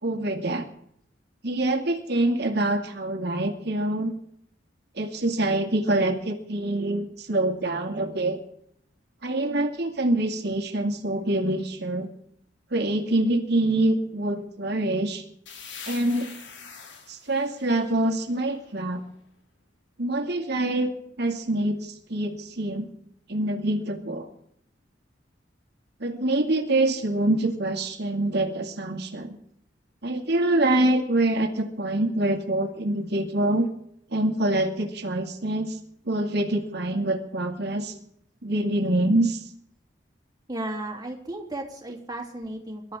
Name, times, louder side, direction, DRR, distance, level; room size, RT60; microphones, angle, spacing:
voice 1, 0.0-0.7 1.4-4.1 5.0-8.4 9.2-12.1 12.7-15.2 15.9-16.3 17.1-19.0 20.0-22.9 23.3-24.3 26.0-29.4 30.0-33.7 34.1-35.8 36.1-37.9 38.4-39.4, right 1 dB, 60° right, 4 dB, 2.4 m, -25 dB
sound 1, 15.5-19.1, left 5 dB, 70° left, 3.0 m, -45 dB
voice 2, 40.5-43.0, right 1 dB, 20° right, 1 dB, 3.2 m, -35 dB
24.5 x 13.0 x 3.7 m, 0.70 s
head